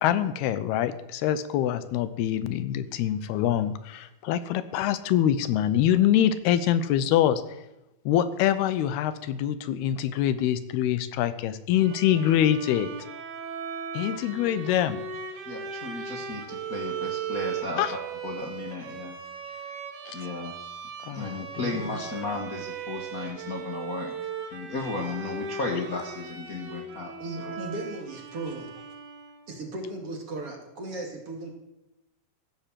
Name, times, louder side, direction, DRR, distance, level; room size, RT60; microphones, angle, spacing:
voice 1, 0.0-7.4 8.1-12.9 13.9-15.0 17.8-17.9 20.1-20.2 21.0-21.7, left 11 dB, 85° left, 13 dB, 2.9 m, -25 dB
Bowed string instrument, 11.8-29.6, right 5 dB, 80° right, 4.1 m, -38 dB
voice 2, 15.4-17.8 18.2-19.2 19.4-19.6 20.1-20.5 21.1-27.5, left 3 dB, 45° left, 0 dB, 1.1 m, -35 dB
voice 3, 27.2-28.7 29.5-31.5, right 2 dB, 40° right, 2 dB, 2.7 m, -36 dB
15.5 x 11.0 x 7.5 m, 0.93 s
omnidirectional pair, 4.5 m